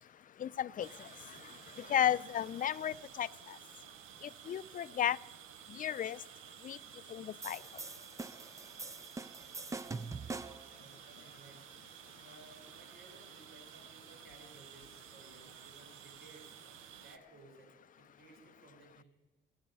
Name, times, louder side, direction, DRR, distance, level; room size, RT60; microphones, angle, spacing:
voice 1, 0.4-3.6 4.2-5.2 5.7-6.2 6.6-6.8 7.1-7.6, left 10 dB, 45° left, 17 dB, 0.4 m, -34 dB
sound 1, 0.8-17.2, right 11 dB, 90° right, 0.6 m, -54 dB
sound 2, 7.4-10.7, right 3 dB, 15° right, 0.4 m, -43 dB
voice 2, 9.4-11.7 12.2-16.6 17.0-19.0, right 2 dB, 70° right, 2 dB, 3.9 m, -60 dB
20.0 x 8.0 x 5.4 m, 1.2 s
cardioid pair, 90°, 20 cm